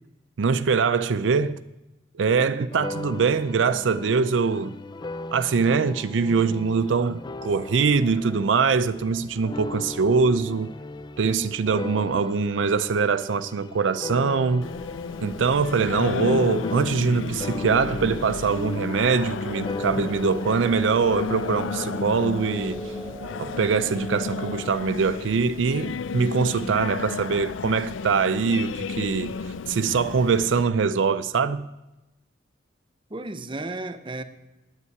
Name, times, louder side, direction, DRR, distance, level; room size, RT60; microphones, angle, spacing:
voice 1, 0.4-1.6 2.1-4.8 5.3-10.7 11.2-14.7 15.2-22.9 23.4-31.7, right 5 dB, 75° right, 0.5 m, -23 dB
voice 2, 2.3-2.7 11.2-11.5 33.1-34.2, right 2 dB, 25° right, 0.8 m, -34 dB
sound 1, 2.7-17.2 17.4-21.9, left 2 dB, 25° left, 0.4 m, -37 dB
Singing, 14.6-30.6, left 5 dB, 85° left, 0.4 m, -33 dB
sound 2, 19.4-24.6, right 1 dB, 10° right, 1.4 m, -39 dB
9.8 x 8.3 x 9.4 m
head